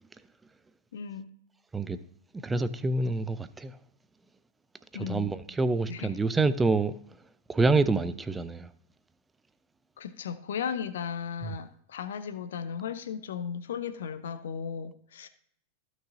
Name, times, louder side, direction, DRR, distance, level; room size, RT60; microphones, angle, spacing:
voice 1, 0.9-1.3 4.9-5.3 5.9-6.1 10.0-15.3, left 7 dB, 60° left, 0.7 m, -36 dB
voice 2, 2.4-3.7 4.9-7.0 7.5-8.7 11.4-11.6, right 3 dB, 10° right, 0.6 m, -27 dB
15.5 x 6.3 x 2.7 m
figure-of-eight pair, 90°, 0 cm